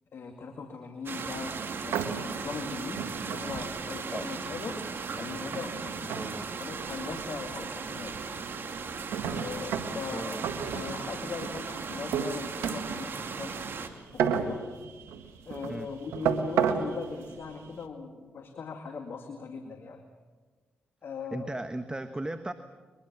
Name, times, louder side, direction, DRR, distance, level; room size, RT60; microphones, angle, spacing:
voice 1, 0.1-4.8 5.2-6.2 6.6-8.1 9.3-10.4 10.7-13.5 13.8-14.6 15.5-20.0 21.0-21.5, left 5 dB, 65° left, 5 dB, 2.2 m, -40 dB
sound 1, 1.1-13.9, right 5 dB, 60° right, 2.4 m, -37 dB
sound 2, 1.2-17.8, right 7 dB, 85° right, 1.6 m, -35 dB
voice 2, 6.0-6.5 9.9-10.4 15.7-15.9 21.3-22.5, right 2 dB, 20° right, 9 dB, 1.4 m, -37 dB
22.5 x 21.5 x 7.3 m, 1.4 s
supercardioid pair, 45°, 4 cm